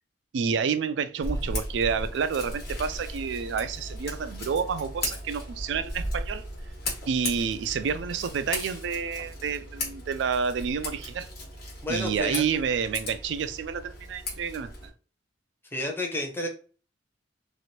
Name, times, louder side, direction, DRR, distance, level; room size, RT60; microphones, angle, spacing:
voice 1, 0.3-6.5 7.1-11.3 11.9-14.7, right 6 dB, 70° right, 0.3 m, -29 dB
Scissors, 1.2-14.9, left 1 dB, 60° left, 1.2 m, -36 dB
voice 2, 11.8-12.6 15.7-16.5, left 1 dB, 10° left, 0.7 m, -31 dB
3.1 x 2.5 x 2.8 m
head